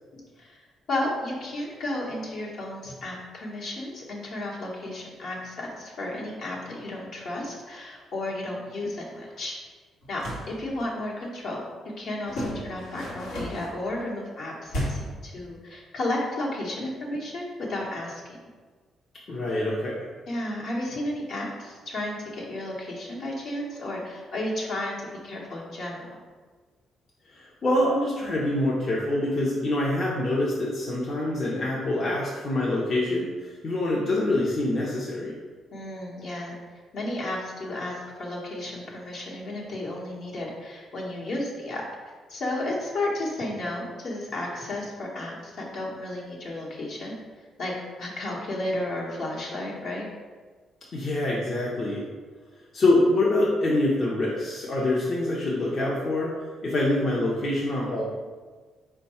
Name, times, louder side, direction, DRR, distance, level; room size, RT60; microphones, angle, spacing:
voice 1, 0.9-9.5 10.1-11.6 12.0-18.2 20.3-26.2 35.7-36.5 36.9-47.2 47.6-47.7 48.0-50.1, left 1 dB, 65° left, -3 dB, 1.0 m, -33 dB
sound 1, 10.0-10.5 12.3-13.7 14.7-15.2, equal, 90° left, 1.1 m, -32 dB
voice 2, 19.3-20.0 27.3-35.3 50.9-52.0 52.7-56.3 56.6-58.0, left 1 dB, 45° left, -5 dB, 0.7 m, -25 dB
4.5 x 2.2 x 4.2 m, 1.4 s
cardioid pair, 90°, 0 cm